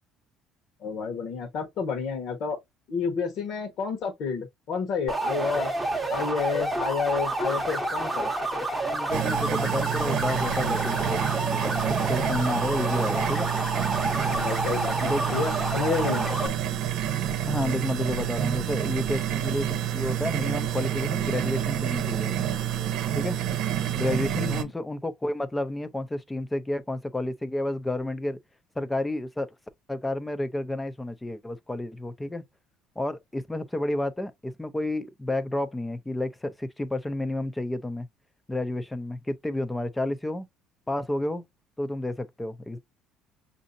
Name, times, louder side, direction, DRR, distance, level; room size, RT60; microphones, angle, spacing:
voice 1, 0.8-2.6 2.9-5.7 6.1-8.3 14.2-16.6 24.3-24.7, left 5 dB, 55° left, 1.1 m, -30 dB
sound 1, 5.1-16.5, right 2 dB, 10° right, 0.9 m, -29 dB
voice 2, 8.8-11.2 11.5-13.5 15.0-15.4 17.5-19.7 19.9-22.3 23.1-23.4 24.0-28.4 28.8-29.5 29.9-32.5 33.0-38.1 38.5-40.5 40.9-41.4 41.8-42.8, left 1 dB, 10° left, 0.5 m, -30 dB
sound 2, 9.1-24.6, right 11 dB, 70° right, 0.8 m, -28 dB
6.0 x 2.6 x 2.6 m
cardioid pair, 140°, 0 cm